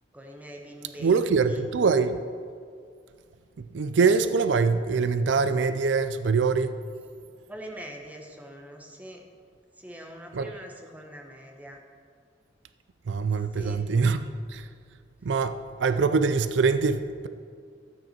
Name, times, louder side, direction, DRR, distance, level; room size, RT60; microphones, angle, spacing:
voice 1, 0.1-1.2 1.5-1.7 7.5-9.2 9.8-11.8 13.5-13.9, right 1 dB, 10° right, 2 dB, 1.1 m, -43 dB
voice 2, 1.0-2.2 3.7-6.7 10.3-10.5 13.1-14.2 14.5-14.6 15.2-17.3, right 5 dB, 85° right, 11 dB, 0.4 m, -23 dB
13.0 x 8.7 x 4.4 m, 2.2 s
head